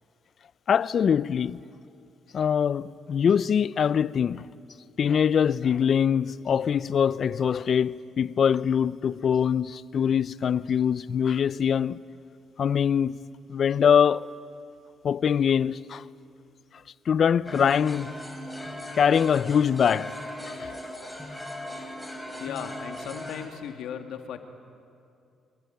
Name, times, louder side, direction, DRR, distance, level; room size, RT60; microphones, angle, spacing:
voice 1, 0.7-1.6 2.3-4.4 5.0-12.0 12.6-13.2 13.5-14.3 15.0-16.0 17.1-18.1 19.0-20.1 20.5-20.7, left 7 dB, 55° left, 0.6 m, -23 dB
sound 1, 17.4-23.5, left 1 dB, 5° left, 4.7 m, -38 dB
voice 2, 22.4-24.4, left 8 dB, 80° left, 2.2 m, -36 dB
25.5 x 21.5 x 9.3 m
cardioid pair, 90°, 0 cm